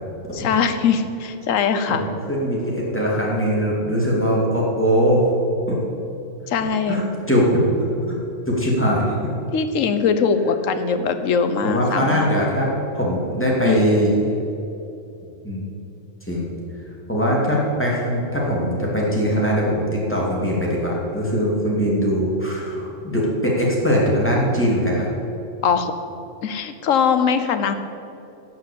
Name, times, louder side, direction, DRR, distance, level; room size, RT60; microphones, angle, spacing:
voice 1, 0.3-2.0 6.5-7.0 9.5-12.5 13.7-13.8 25.6-25.9 26.4-27.7, left 6 dB, 75° left, 9 dB, 1.2 m, -21 dB
voice 2, 1.9-5.3 5.7-5.8 6.9-7.7 8.0-8.2 8.5-9.3 11.6-14.2 15.4-15.6 16.3-16.5 17.1-25.1, equal, 10° left, -5 dB, 2.5 m, -21 dB
11.0 x 6.1 x 8.7 m, 2.8 s
omnidirectional pair, 1.4 m